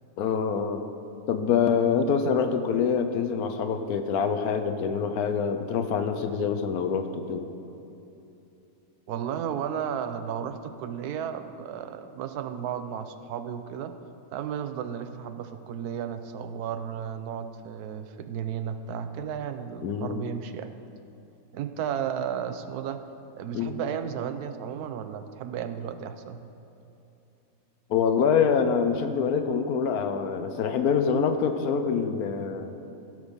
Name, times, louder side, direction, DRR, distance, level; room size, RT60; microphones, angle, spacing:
voice 1, 0.2-0.8 1.3-7.5 19.8-20.2 23.5-23.8 27.9-32.8, left 6 dB, 75° left, 7 dB, 1.2 m, -25 dB
voice 2, 9.1-13.9 14.3-20.7 21.5-23.0 23.4-26.4, right 8 dB, 80° right, 9 dB, 1.1 m, -33 dB
15.5 x 6.2 x 5.3 m, 2.9 s
omnidirectional pair, 1.6 m